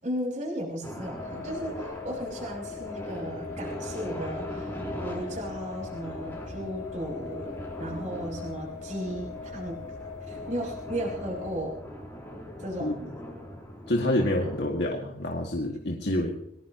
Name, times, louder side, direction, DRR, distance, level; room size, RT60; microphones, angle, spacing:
voice 1, 0.0-4.7 5.0-9.8 10.2-11.8 12.6-13.2, right 1 dB, 40° right, -3 dB, 5.8 m, -35 dB
sound 1, 0.8-14.7, equal, 15° left, 4.3 m, -40 dB
sound 2, 1.2-11.6, left 6 dB, 45° left, 3.8 m, -41 dB
voice 2, 13.9-16.3, left 1 dB, 75° left, 0 dB, 2.1 m, -27 dB
24.0 x 19.0 x 3.0 m, 0.77 s
head